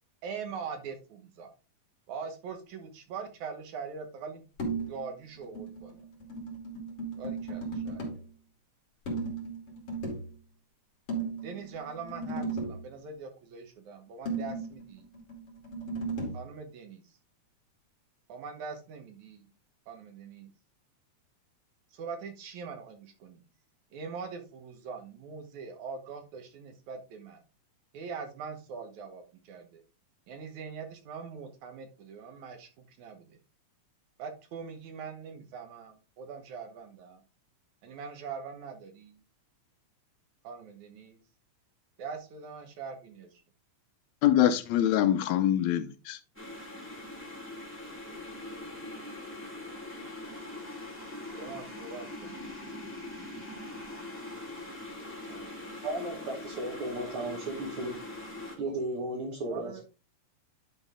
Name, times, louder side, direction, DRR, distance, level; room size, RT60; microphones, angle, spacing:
voice 1, 0.2-1.5 2.1-4.4 4.9-6.0 7.2-8.2 11.4-15.1 16.3-17.0 18.3-19.5 19.9-20.5 21.9-23.4 23.9-27.4 27.9-29.8 30.3-33.3 34.2-37.2 37.8-39.2 40.4-41.2 42.0-43.3 51.3-52.7 55.3-55.7 58.7-58.8 59.5-59.8, right 5 dB, 70° right, 2.5 m, -42 dB
sound 1, 4.6-5.1 5.4-8.2 9.1-10.3 11.1-12.8 14.3-16.5, right 3 dB, 45° left, 3.4 m, -36 dB
voice 2, 44.2-46.2, left 11 dB, 75° left, 1.8 m, -24 dB
sound 2, 46.4-58.6, left 1 dB, 5° left, 2.0 m, -42 dB
voice 3, 55.8-57.9 58.6-59.8, right 1 dB, 50° right, 1.9 m, -34 dB
11.0 x 4.0 x 3.7 m
omnidirectional pair, 3.6 m